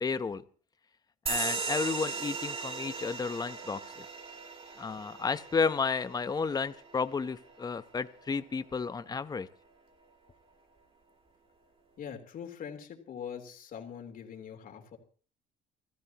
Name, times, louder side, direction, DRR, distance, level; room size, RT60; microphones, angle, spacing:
voice 1, 0.0-0.4 1.3-4.1 4.8-9.5, left 5 dB, 25° left, 13 dB, 0.9 m, -32 dB
sound 1, 1.3-8.3, right 4 dB, 35° right, 3.1 m, -38 dB
voice 2, 12.0-15.0, left 8 dB, 55° left, 5 dB, 3.4 m, -43 dB
30.0 x 14.0 x 3.0 m, 0.41 s
cardioid pair, 110°, 17 cm